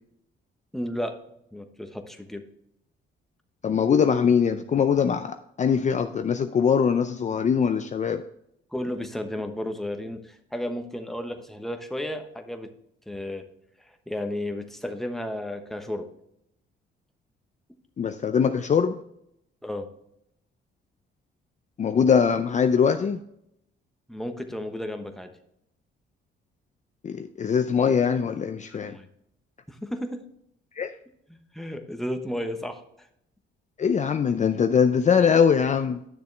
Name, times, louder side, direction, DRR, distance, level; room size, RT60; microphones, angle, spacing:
voice 1, 0.7-1.2 1.5-2.4 8.7-12.7 13.1-13.4 14.1-16.1 19.6-19.9 24.1-25.3 28.7-29.1 29.7-30.2 31.3-32.8, left 1 dB, ahead, 6 dB, 1.1 m, -33 dB
voice 2, 3.6-8.2 18.0-19.0 21.8-23.2 27.0-29.0 30.8-30.9 33.8-36.0, left 6 dB, 35° left, 8 dB, 0.5 m, -22 dB
10.5 x 6.7 x 3.3 m, 0.77 s
cardioid pair, 90°, 20 cm